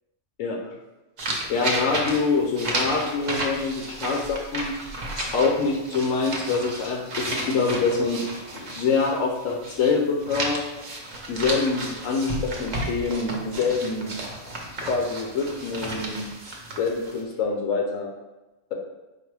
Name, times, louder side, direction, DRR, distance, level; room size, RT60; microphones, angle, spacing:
sound 1, 1.2-9.9 10.2-17.2, right 1 dB, 40° right, 0.7 m, -32 dB
voice 1, 1.5-4.7 5.2-8.2 8.5-10.6 11.3-14.1 14.8-16.3 16.8-18.1, left 4 dB, 75° left, 0 dB, 1.0 m, -25 dB
5.1 x 2.1 x 4.6 m, 1.1 s
omnidirectional pair, 1.4 m